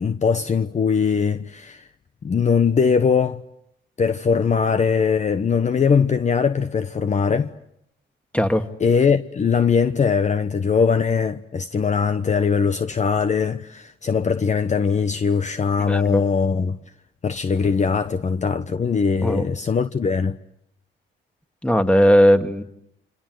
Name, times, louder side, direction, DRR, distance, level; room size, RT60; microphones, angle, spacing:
voice 1, 0.0-1.9 2.2-3.4 4.0-7.5 8.8-16.8 17.2-20.4, left 6 dB, 35° left, 1.0 m, -21 dB
voice 2, 15.9-16.2 19.2-19.4 21.6-22.6, equal, 5° left, 2.2 m, -17 dB
29.0 x 26.0 x 7.9 m
cardioid pair, 90°, 20 cm